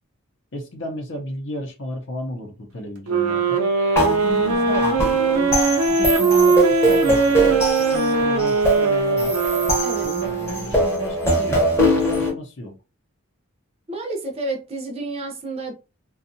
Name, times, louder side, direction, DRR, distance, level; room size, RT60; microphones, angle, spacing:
voice 1, 0.5-3.6 4.0-5.6 5.9-9.3 10.0-12.7, equal, 55° left, 0.6 m, -33 dB
sound 1, 3.1-10.8, right 4 dB, 75° right, 0.6 m, -20 dB
sound 2, 3.9-12.3, right 1 dB, 10° left, 0.7 m, -22 dB
voice 2, 13.9-15.7, right 2 dB, 25° right, 0.6 m, -30 dB
2.6 x 2.3 x 2.6 m
head